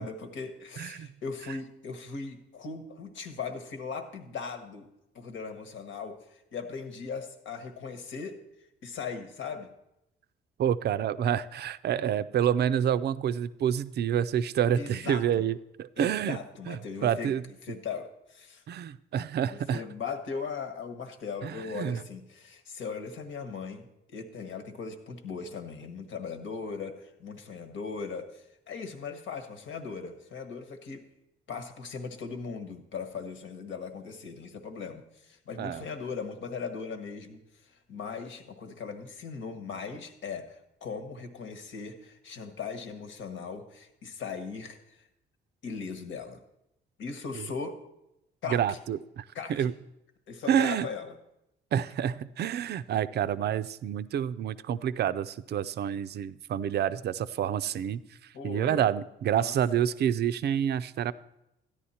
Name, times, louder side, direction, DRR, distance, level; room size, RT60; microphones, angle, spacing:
voice 1, 0.0-4.9 5.1-8.4 8.8-9.7 14.7-15.4 16.0-17.3 17.6-18.6 19.4-31.0 31.5-45.0 45.6-46.4 47.0-47.8 48.4-48.8 49.3-49.7 50.3-51.2 58.3-58.9 59.3-59.8, left 5 dB, 70° left, 8 dB, 1.4 m, -39 dB
voice 2, 0.8-1.1 10.6-16.4 16.7-17.4 18.7-19.8 21.4-22.0 35.6-35.8 47.3-47.5 48.5-49.2 49.5-49.7 50.5-50.9 51.7-58.0 58.4-61.1, right 9 dB, 55° right, 14 dB, 0.5 m, -28 dB
13.0 x 10.5 x 4.3 m, 0.85 s
cardioid pair, 90°, 20 cm